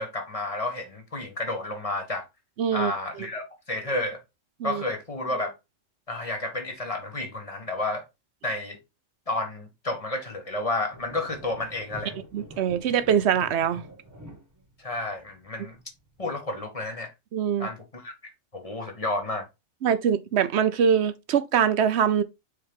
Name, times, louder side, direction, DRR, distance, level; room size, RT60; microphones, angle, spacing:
voice 1, 0.0-2.3 2.7-4.2 4.6-5.5 6.1-8.0 8.4-8.8 9.3-12.2 14.8-15.8 16.2-17.1 17.6-19.5, left 2 dB, 30° left, 1.3 m, -31 dB
voice 2, 2.6-2.9 4.6-4.8 12.3-13.8 17.3-17.7 19.8-22.2, right 8 dB, 65° right, 0.9 m, -23 dB
sound 1, 10.9-16.3, equal, 15° right, 1.3 m, -46 dB
6.7 x 4.3 x 3.5 m
omnidirectional pair, 1.3 m